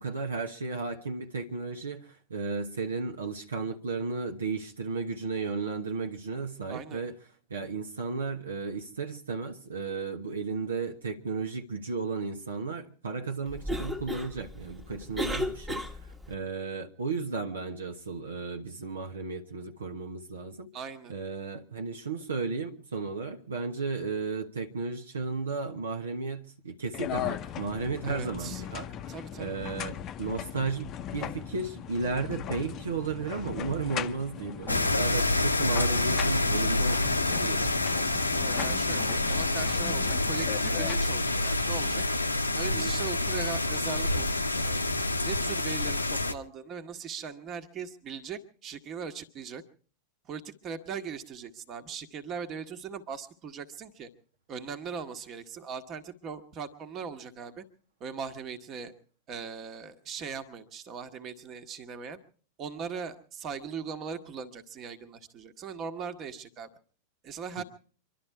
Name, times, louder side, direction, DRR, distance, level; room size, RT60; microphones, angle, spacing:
voice 1, 0.0-7.1 7.5-20.7 21.1-37.9 42.7-43.0 67.6-67.7, right 4 dB, 70° right, 1.1 m, -34 dB
voice 2, 6.7-7.0 20.7-21.1 28.0-28.6 29.1-29.6 38.3-42.0 42.5-44.8 45.2-49.6 50.2-54.1 54.5-57.6 58.0-58.9 59.3-62.2 62.6-66.7 67.2-67.6, right 6 dB, 30° right, 1.5 m, -39 dB
Cough, 13.5-16.3, left 1 dB, 10° right, 1.4 m, -35 dB
sound 1, 26.9-40.9, left 10 dB, 30° left, 0.7 m, -38 dB
sound 2, 34.7-46.3, left 2 dB, 85° left, 0.8 m, -27 dB
25.5 x 12.0 x 4.7 m
figure-of-eight pair, 90°, 0 cm